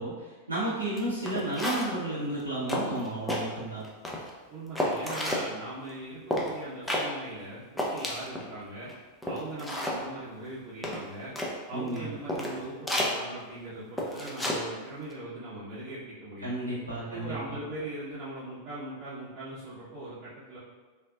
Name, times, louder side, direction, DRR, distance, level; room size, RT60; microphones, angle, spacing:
voice 1, 0.0-3.8 11.7-12.1 16.4-17.6, right 1 dB, 80° right, -10 dB, 0.8 m, -32 dB
sound 1, 1.0-1.1 1.3-2.0 2.4-2.5 2.7-3.4 3.8-4.3 4.8-5.5 6.3-6.5 6.9-7.1 7.4-7.5 7.8-8.5 8.9-9.0 9.2-10.0 10.8-11.5 12.0-12.1 12.3-12.5 12.9-13.1 14.0-14.6 14.9-15.1, left 1 dB, 5° left, 0.5 m, -31 dB
voice 2, 4.5-8.9 9.2-11.3 11.7-16.5 16.9-20.6, right 2 dB, 30° right, -10 dB, 0.8 m, -40 dB
3.6 x 2.4 x 2.4 m, 1.3 s
figure-of-eight pair, 90°, 0 cm